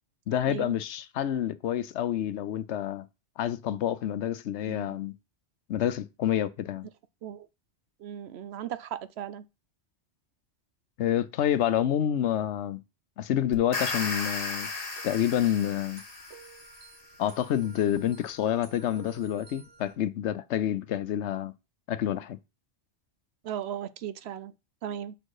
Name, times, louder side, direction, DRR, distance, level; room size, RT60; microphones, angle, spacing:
voice 1, 0.3-3.1 3.4-5.1 5.7-6.9 11.0-12.8 13.2-14.7 15.0-16.0 17.2-21.5 21.9-22.4, left 10 dB, 80° left, 1.0 m, -28 dB
voice 2, 4.7-5.0 7.2-7.5 8.0-9.4 23.4-24.5 24.8-25.1, right 10 dB, 70° right, 0.8 m, -37 dB
sound 1, 13.5-16.7, left 3 dB, 55° left, 1.6 m, -35 dB
sound 2, 14.6-19.9, right 4 dB, 85° right, 2.0 m, -53 dB
6.7 x 4.4 x 4.8 m
omnidirectional pair, 1.1 m